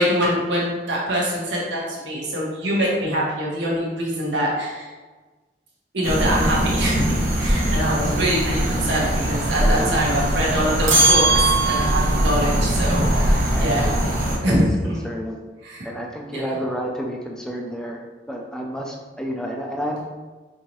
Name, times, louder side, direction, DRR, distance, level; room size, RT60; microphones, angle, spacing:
voice 1, 0.0-4.9 5.9-7.1 7.4-13.9 14.4-14.9 15.6-15.9 16.3-16.4, equal, 70° right, -4 dB, 1.1 m, -24 dB
sound 1, 6.0-14.4, right 1 dB, 50° right, 0.8 m, -22 dB
voice 2, 9.6-9.9 13.5-14.1 14.5-15.4 15.8-18.0 18.3-20.0, equal, 5° left, 0 dB, 0.3 m, -30 dB
sound 2, 10.9-12.2, right 3 dB, 85° right, 0.8 m, -18 dB
4.6 x 2.6 x 2.9 m, 1.3 s
head